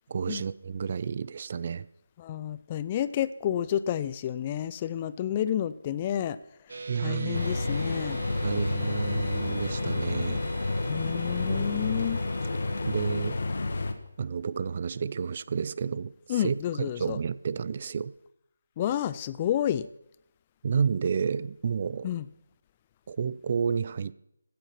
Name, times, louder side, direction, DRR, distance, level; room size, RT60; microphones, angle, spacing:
voice 1, 0.1-1.9 6.9-7.4 8.4-10.4 11.5-11.7 12.4-12.5 12.8-13.4 14.2-18.1 20.6-22.1 23.1-24.1, right 6 dB, 40° right, 18 dB, 0.4 m, -30 dB
voice 2, 2.2-6.4 7.0-8.2 10.9-12.2 16.3-17.2 18.8-19.9 22.0-22.2, left 10 dB, 20° left, 16 dB, 0.4 m, -30 dB
sound 1, 6.7-13.4, right 4 dB, 60° right, 1.4 m, -41 dB
sound 2, 7.3-13.9, left 3 dB, 55° left, 1.5 m, -30 dB
16.0 x 7.8 x 5.9 m, 0.79 s
figure-of-eight pair, 165°, 0 cm